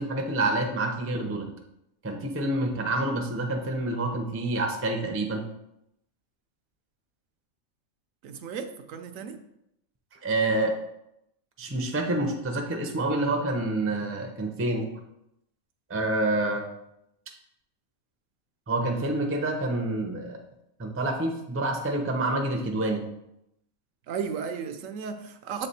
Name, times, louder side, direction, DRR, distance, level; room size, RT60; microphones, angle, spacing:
voice 1, 0.0-1.5 2.0-5.4 10.2-10.7 11.6-14.9 15.9-16.7 18.7-20.4 20.8-23.0, right 2 dB, 20° right, 3 dB, 0.4 m, -27 dB
voice 2, 8.2-9.4 24.1-25.7, right 6 dB, 75° right, 7 dB, 0.9 m, -34 dB
7.2 x 3.3 x 4.2 m, 0.82 s
omnidirectional pair, 1.4 m